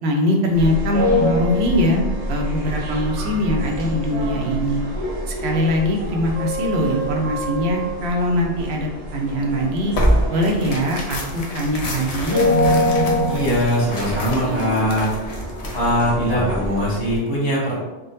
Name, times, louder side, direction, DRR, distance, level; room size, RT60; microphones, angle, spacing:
voice 1, 0.0-2.0 2.3-4.8 5.3-9.9 10.3-12.4, left 1 dB, 85° right, 1 dB, 0.9 m, -22 dB
sound 1, 0.5-17.2, left 1 dB, 45° right, 0.6 m, -26 dB
Tearing, 9.9-16.1, equal, 50° left, 0.5 m, -26 dB
voice 2, 13.3-15.1 15.7-17.8, equal, 70° left, -6 dB, 1.3 m, -21 dB
3.7 x 2.1 x 2.6 m, 1.1 s
omnidirectional pair, 1.0 m